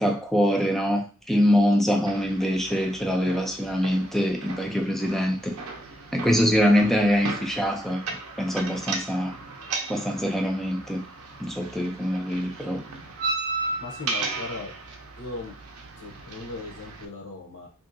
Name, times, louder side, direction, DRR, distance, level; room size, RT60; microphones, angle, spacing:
voice 1, 0.0-5.5 6.1-9.3 9.9-11.0 11.4-12.8, equal, ahead, 3 dB, 0.3 m, -24 dB
sound 1, 2.1-17.1, right 3 dB, 70° right, 0.5 m, -36 dB
voice 2, 13.8-14.7 15.2-15.5 16.0-17.7, left 3 dB, 75° left, 2 dB, 0.8 m, -37 dB
2.9 x 2.7 x 2.5 m, 0.35 s
head